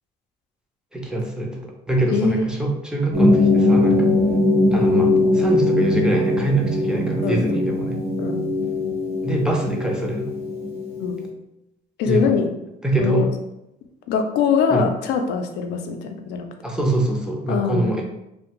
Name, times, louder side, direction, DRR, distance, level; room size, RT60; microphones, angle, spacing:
voice 1, 0.9-4.1 4.7-8.0 9.2-10.3 12.0-12.4 12.8-13.3 14.7-14.9 16.6-18.0, right 2 dB, 5° right, 0 dB, 0.5 m, -24 dB
voice 2, 2.1-2.5 7.2-7.7 8.2-8.4 11.0-11.2 12.0-12.5 13.0-13.2 14.1-16.5 17.5-18.0, left 6 dB, 85° left, 5 dB, 0.4 m, -22 dB
sound 1, 3.1-11.3, left 2 dB, 35° right, 1.0 m, -20 dB
2.5 x 2.0 x 2.9 m, 0.86 s
cardioid pair, 110°, 17 cm